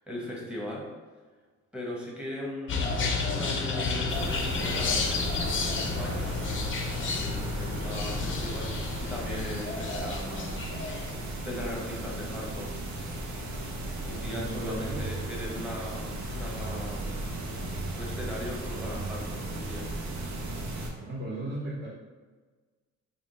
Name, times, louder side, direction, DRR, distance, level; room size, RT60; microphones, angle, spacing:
voice 1, 0.1-0.9 1.7-6.3 7.1-8.7 9.0-10.7 11.4-12.7 14.0-17.2 17.9-19.9, left 1 dB, 5° right, -4 dB, 1.0 m, -38 dB
sound 1, 2.7-11.1, left 4 dB, 40° left, 0.5 m, -31 dB
sound 2, 4.1-20.9, right 1 dB, 65° right, 0.7 m, -35 dB
voice 2, 14.1-15.1 21.0-21.9, right 1 dB, 30° right, -7 dB, 0.9 m, -36 dB
3.5 x 2.2 x 3.7 m, 1.4 s
cardioid pair, 90°, 30 cm